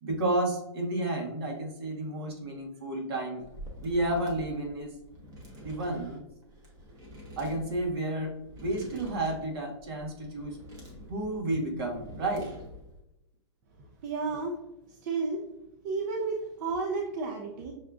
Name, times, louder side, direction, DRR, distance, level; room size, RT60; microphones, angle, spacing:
voice 1, 0.0-3.4 3.8-4.9 5.6-6.2 7.4-8.3 8.6-10.6 11.1-12.5, right 1 dB, 55° right, 1 dB, 1.2 m, -31 dB
sound 1, 3.4-13.0, equal, 20° right, 0.9 m, -47 dB
voice 2, 14.0-14.6 15.0-15.4 15.8-17.7, right 4 dB, 35° right, 1 dB, 0.5 m, -32 dB
6.3 x 2.3 x 2.4 m, 0.90 s
hypercardioid pair, 150°, 16 cm